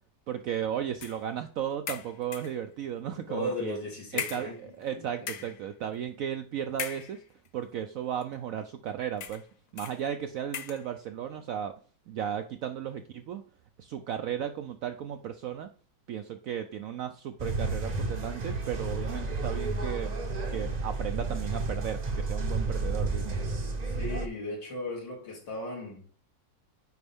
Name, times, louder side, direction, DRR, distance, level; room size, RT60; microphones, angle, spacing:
voice 1, 0.3-3.8 4.1-7.2 7.5-9.4 9.7-11.7 12.1-13.4 13.8-15.7 16.1-20.1 20.5-23.4, right 9 dB, 75° right, 0.7 m, -35 dB
sound 1, 1.0-1.3 1.9-2.6 3.4-3.6 4.2-4.9 5.2-5.6 6.7-7.5 8.2-8.3 9.2-9.5 9.8-10.0 10.5-10.9, left 8 dB, 70° left, 1.3 m, -38 dB
voice 2, 3.3-4.5 4.9-5.0 23.9-26.0, left 1 dB, 85° left, 3.2 m, -36 dB
sound 2, 17.4-24.3, right 3 dB, 40° right, 0.6 m, -31 dB
9.4 x 4.3 x 3.5 m
omnidirectional pair, 1.9 m